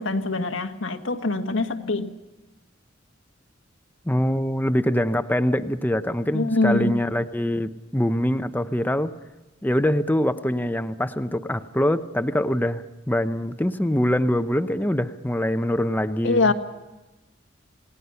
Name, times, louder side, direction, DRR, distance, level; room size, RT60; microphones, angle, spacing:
voice 1, 0.0-2.1 6.3-7.0 16.2-16.5, left 2 dB, 90° left, 1.7 m, -24 dB
voice 2, 4.1-9.1 9.6-16.5, left 1 dB, 10° left, 0.8 m, -24 dB
28.5 x 18.5 x 5.7 m
head